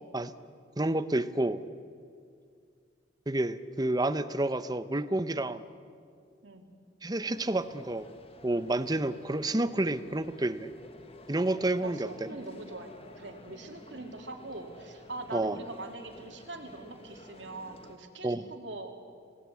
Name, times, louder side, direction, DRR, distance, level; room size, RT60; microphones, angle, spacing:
voice 1, 0.8-1.6 3.3-5.6 7.0-8.1 8.4-10.7 11.3-12.3 15.3-15.6 18.2-18.5, right 2 dB, 20° right, 12 dB, 0.7 m, -29 dB
sound 1, 7.3-18.0, left 1 dB, 30° left, 1.3 m, -52 dB
voice 2, 11.8-18.9, right 2 dB, 70° right, 3 dB, 2.6 m, -43 dB
27.0 x 18.0 x 8.4 m, 2.3 s
head